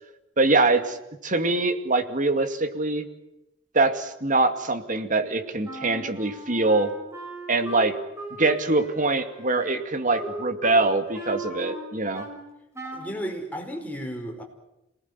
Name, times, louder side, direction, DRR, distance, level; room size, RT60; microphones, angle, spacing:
voice 1, 0.4-1.0 1.2-3.1 3.7-6.9 7.5-7.9 8.4-12.3, right 3 dB, 40° right, 8 dB, 2.4 m, -23 dB
Wind instrument woodwind instrument, 5.6-12.4 12.7-13.2, right 2 dB, 15° right, 6.1 m, -38 dB
voice 2, 12.9-14.4, equal, 10° left, 1 dB, 5.0 m, -33 dB
27.5 x 19.5 x 9.6 m, 0.89 s
head